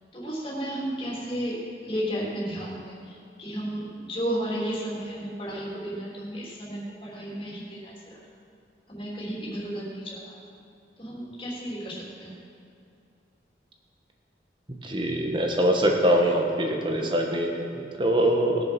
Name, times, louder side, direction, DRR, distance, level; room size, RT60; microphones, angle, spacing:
voice 1, 0.1-1.5 1.8-8.2 8.9-10.3 11.0-12.3, equal, 30° left, -5 dB, 3.3 m, -33 dB
voice 2, 14.8-18.6, right 1 dB, 25° right, 1 dB, 1.5 m, -23 dB
20.5 x 7.0 x 6.1 m, 2.5 s
head